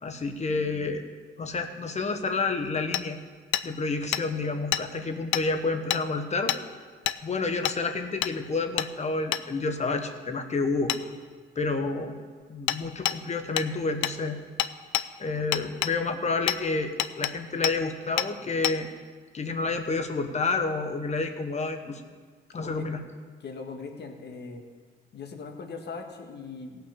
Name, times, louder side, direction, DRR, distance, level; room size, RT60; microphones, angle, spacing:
voice 1, 0.0-1.0 1.4-3.2 3.6-6.5 7.2-10.9 11.5-12.2 12.5-14.4 15.2-18.9 19.3-22.0 22.5-23.0, left 3 dB, 35° left, 6 dB, 1.2 m, -29 dB
Hammer, 2.9-3.0 3.5-3.7 4.1-4.2 4.7-4.8 5.3-5.5 5.9-6.0 6.5-6.6 7.1-7.2 7.7-7.8 8.2-8.3 8.8-8.9 9.3-9.4 10.9-11.0 12.7-12.8 13.1-13.2 13.6-13.7 14.0-14.2 14.6-15.1 15.5-15.9 16.5-16.6 17.0-17.3 17.6-17.8 18.2-18.3 18.6-18.8, left 13 dB, 75° left, 0.5 m, -27 dB
voice 2, 22.5-22.9 23.4-24.6 25.1-26.9, left 4 dB, 60° left, 3 dB, 1.7 m, -40 dB
16.5 x 5.8 x 6.9 m, 1.5 s
cardioid pair, 90°, 20 cm